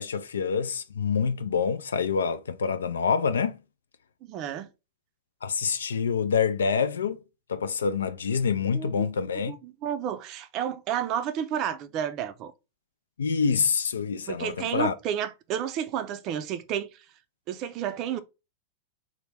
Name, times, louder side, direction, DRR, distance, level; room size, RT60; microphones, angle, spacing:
voice 1, 0.0-3.6 5.4-7.2 7.5-9.5 13.2-14.9, left 6 dB, 80° left, 0.3 m, -26 dB
voice 2, 4.2-4.7 8.7-9.1 9.5-12.5 14.3-17.0 17.5-18.2, right 9 dB, 45° right, 0.4 m, -31 dB
3.3 x 2.1 x 3.2 m
hypercardioid pair, 100°, 0 cm